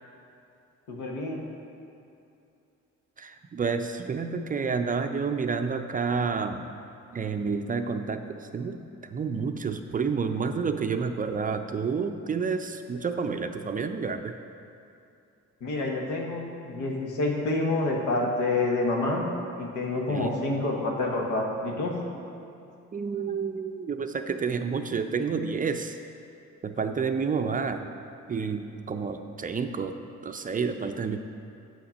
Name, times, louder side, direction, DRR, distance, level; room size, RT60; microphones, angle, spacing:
voice 1, 0.9-1.4 15.6-19.3 19.6-22.0, left 2 dB, 90° left, 0 dB, 1.2 m, -28 dB
voice 2, 3.2-6.6 7.1-14.4 20.1-20.3 22.9-26.0 26.6-27.8 28.3-30.0 30.2-31.2, right 5 dB, 30° right, 7 dB, 0.4 m, -29 dB
7.2 x 5.9 x 5.0 m, 2.7 s
cardioid pair, 90°, 30 cm